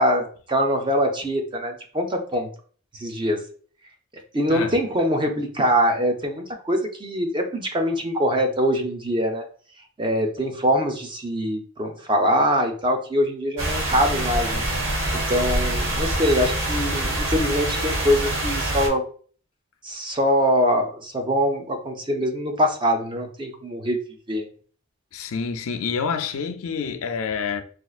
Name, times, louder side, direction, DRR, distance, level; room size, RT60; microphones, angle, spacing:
voice 1, 0.0-2.5 2.9-3.4 4.3-9.5 10.0-14.6 15.1-19.0 19.8-24.0 24.3-24.5, equal, 20° right, 0.5 m, -23 dB
sound 1, 13.6-18.9, right 1 dB, 55° right, 0.9 m, -25 dB
voice 2, 25.1-27.6, left 5 dB, 70° left, 0.4 m, -27 dB
4.3 x 2.4 x 2.4 m
head